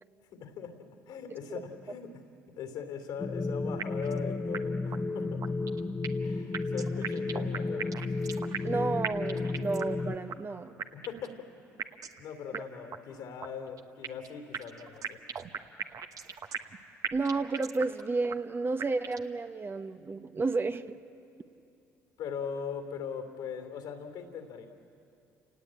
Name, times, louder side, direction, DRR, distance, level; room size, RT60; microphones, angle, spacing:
voice 1, 0.4-2.2 2.6-5.5 6.2-8.0 10.6-11.5 12.2-15.2 22.2-24.7, left 7 dB, 75° left, 5 dB, 3.1 m, -40 dB
sound 1, 3.2-10.2, left 3 dB, 25° left, 1.0 m, -33 dB
sound 2, 3.8-4.2 4.5-4.6 4.9-5.0 5.4-6.3 6.5-8.8 9.0-10.0 10.3-10.4 10.8-11.3 11.8-12.2 12.5-12.6 12.9-13.0 13.4-14.3 14.5-16.8 17.0-18.0 18.3-18.4 18.8-19.3, right 7 dB, 55° right, 1.2 m, -37 dB
voice 2, 8.6-10.7 12.5-12.6 17.1-20.8, right 3 dB, 30° right, 10 dB, 0.9 m, -31 dB
29.5 x 18.5 x 8.8 m, 2.6 s
hypercardioid pair, 60°, 7 cm